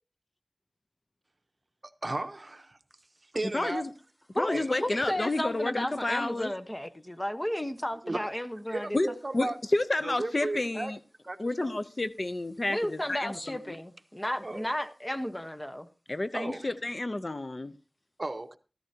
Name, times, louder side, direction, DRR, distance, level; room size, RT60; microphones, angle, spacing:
voice 1, 1.8-2.8 3.2-3.8 4.5-4.8 8.0-8.2 8.7-9.6 10.0-10.9 11.2-11.8 14.4-14.7 16.3-16.7 18.2-18.6, right 2 dB, 50° right, 0.8 m, -35 dB
voice 2, 3.5-3.9 4.3-6.5 8.9-9.1 9.3-11.0 11.4-13.4 13.7-13.8 16.1-17.7, left 2 dB, 50° left, 0.6 m, -30 dB
voice 3, 4.3-9.0 12.7-15.9, left 1 dB, 20° left, 0.9 m, -33 dB
14.0 x 13.5 x 2.8 m
wide cardioid pair, 60°, 0 cm